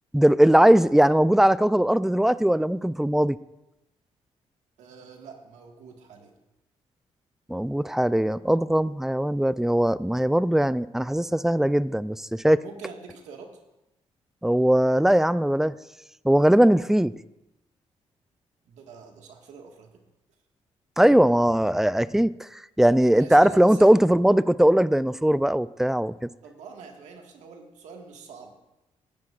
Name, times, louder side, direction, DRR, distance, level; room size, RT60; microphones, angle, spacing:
voice 1, 0.1-3.4 7.5-12.6 14.4-15.8 16.2-17.1 21.0-26.1, right 1 dB, 5° right, 17 dB, 0.3 m, -20 dB
voice 2, 4.8-6.3 12.6-13.5 18.7-19.9 23.0-24.0 26.4-28.5, right 5 dB, 85° right, 2 dB, 1.7 m, -44 dB
17.5 x 10.5 x 2.5 m, 0.91 s
cardioid pair, 80°, 12 cm